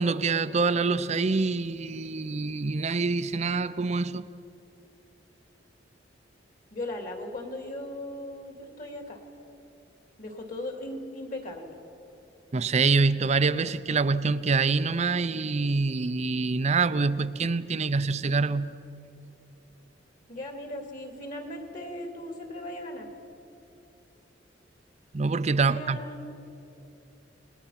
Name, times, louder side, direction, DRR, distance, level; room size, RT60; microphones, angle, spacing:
voice 1, 0.0-4.3 12.5-18.7 25.1-26.0, right 4 dB, 35° right, 14 dB, 0.5 m, -25 dB
voice 2, 6.7-9.2 10.2-11.7 20.3-23.1 25.6-26.2, left 1 dB, 45° left, 3 dB, 2.9 m, -38 dB
30.0 x 19.5 x 5.9 m, 2.8 s
head